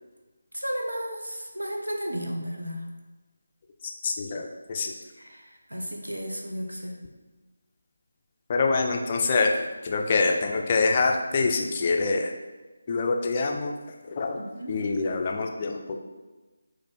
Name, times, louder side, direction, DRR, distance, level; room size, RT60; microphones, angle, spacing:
voice 1, 0.5-2.8 5.2-7.0 14.4-14.7, equal, 80° right, 1 dB, 0.8 m, -33 dB
voice 2, 3.8-4.9 8.5-9.6 9.8-12.3 12.9-13.7 14.0-14.4 14.7-16.0, left 3 dB, 30° left, 2 dB, 0.3 m, -25 dB
4.2 x 2.5 x 4.1 m, 1.2 s
figure-of-eight pair, 155°, 0 cm